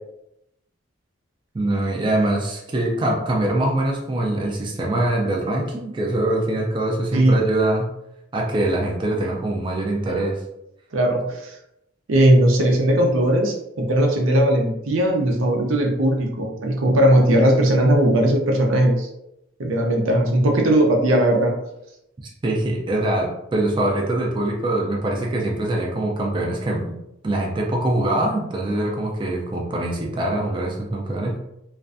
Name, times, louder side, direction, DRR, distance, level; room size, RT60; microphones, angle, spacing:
voice 1, 1.5-7.9 8.3-10.4 22.4-26.9 27.2-31.4, right 1 dB, 25° right, -1 dB, 0.3 m, -23 dB
voice 2, 10.9-11.5 12.1-19.1 19.6-21.5, right 1 dB, 85° right, 1 dB, 0.5 m, -18 dB
2.4 x 2.2 x 2.4 m, 0.85 s
head